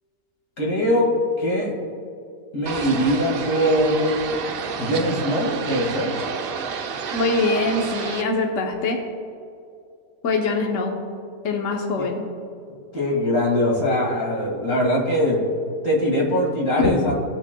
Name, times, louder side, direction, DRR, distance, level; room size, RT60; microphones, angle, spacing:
voice 1, 0.6-1.1 1.4-1.7 2.5-4.2 4.8-6.1 12.0-12.1 12.9-15.4 15.8-17.1, equal, 90° left, -2 dB, 2.4 m, -21 dB
sound 1, 2.7-8.2, right 6 dB, 60° right, 0.6 m, -30 dB
voice 2, 7.1-9.0 10.2-11.0 11.4-12.2 16.8-17.1, left 3 dB, 65° left, 1 dB, 1.2 m, -23 dB
17.5 x 6.3 x 2.2 m, 2.6 s
omnidirectional pair, 1.5 m